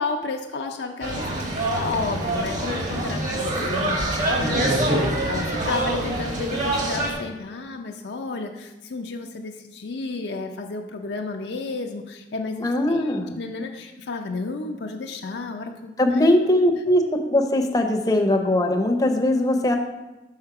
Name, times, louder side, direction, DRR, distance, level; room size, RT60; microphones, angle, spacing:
voice 1, 0.0-16.4, left 3 dB, 70° left, 4 dB, 0.5 m, -32 dB
sound 1, 1.0-7.1, right 1 dB, 45° right, 1.2 m, -25 dB
voice 2, 12.6-13.3 16.0-19.8, left 1 dB, 20° left, 3 dB, 0.6 m, -20 dB
5.7 x 4.3 x 5.8 m, 1.1 s
head